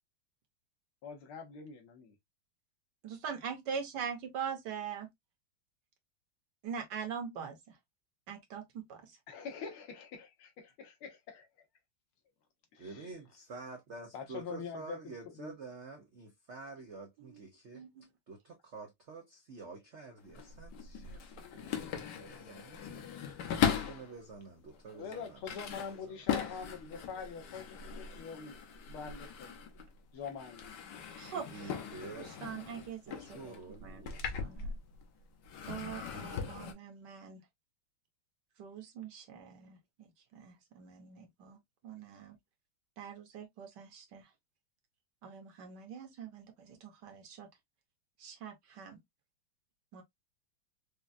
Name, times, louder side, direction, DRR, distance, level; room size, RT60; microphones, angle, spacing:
voice 1, 1.0-2.2 9.3-11.5 12.7-13.1 14.1-15.5 24.9-28.6 28.9-29.6 30.1-30.8, left 6 dB, 90° left, 2.0 m, -44 dB
voice 2, 3.0-5.1 6.6-7.8 8.3-9.2 17.2-17.4 17.7-18.1 31.2-31.7 32.2-33.6 33.8-34.7 35.7-37.4 38.6-41.6 41.8-42.4 43.0-44.3 45.2-47.5 48.2-49.0 49.9-50.0, right 7 dB, 60° right, 1.3 m, -43 dB
voice 3, 12.8-17.8 18.3-23.3 23.6-26.6 31.3-34.2, right 4 dB, 85° right, 0.6 m, -49 dB
sound 1, 20.2-24.1 24.7-30.0 30.2-35.1 35.4-36.7, left 8 dB, 60° left, 1.3 m, -39 dB
5.0 x 2.3 x 2.5 m
omnidirectional pair, 2.3 m